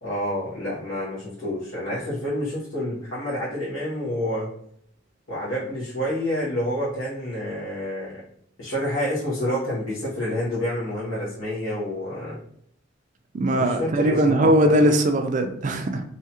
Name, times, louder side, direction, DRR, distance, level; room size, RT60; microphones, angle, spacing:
voice 1, 0.0-4.5 5.3-8.1 8.6-12.4 13.5-14.8, left 1 dB, 80° left, -9 dB, 1.0 m, -28 dB
voice 2, 13.3-16.0, right 1 dB, 40° right, 6 dB, 0.3 m, -20 dB
2.7 x 2.3 x 2.8 m, 0.68 s
head